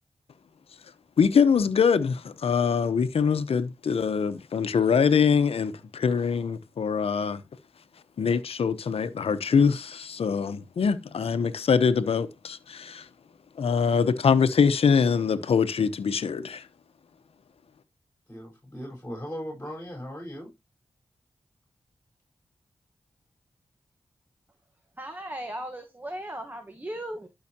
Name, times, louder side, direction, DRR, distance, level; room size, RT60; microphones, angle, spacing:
voice 1, 1.2-7.4 8.2-13.1 13.6-16.7, left 6 dB, 75° left, 0.9 m, -23 dB
voice 2, 18.3-20.5, equal, 15° left, 4.5 m, -38 dB
voice 3, 25.0-27.3, right 1 dB, 20° right, 1.3 m, -37 dB
12.0 x 5.7 x 2.9 m
cardioid pair, 55°, 10 cm